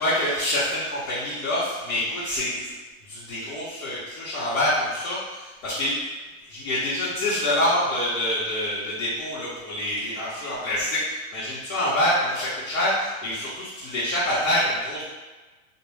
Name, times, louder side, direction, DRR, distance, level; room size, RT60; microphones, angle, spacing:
voice 1, 0.0-2.7 3.1-6.0 6.5-15.0, left 1 dB, 65° left, -9 dB, 1.1 m, -26 dB
2.5 x 2.2 x 3.2 m, 1.3 s
hypercardioid pair, 135°, 41 cm